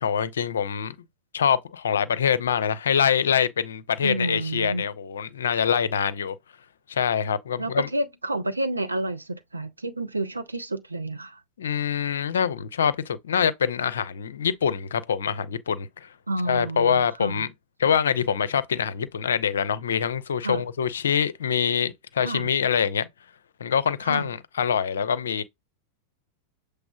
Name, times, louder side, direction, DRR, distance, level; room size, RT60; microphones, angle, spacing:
voice 1, 0.0-0.9 1.3-6.3 6.9-7.9 11.6-16.1 16.5-17.5 17.8-23.1 23.6-25.4, left 7 dB, 65° left, 0.4 m, -25 dB
voice 2, 4.0-4.8 7.6-11.4 16.3-17.5 20.4-20.6 22.2-22.5 24.0-24.3, right 2 dB, 80° right, 0.6 m, -30 dB
7.0 x 3.2 x 2.3 m
figure-of-eight pair, 90°, 0 cm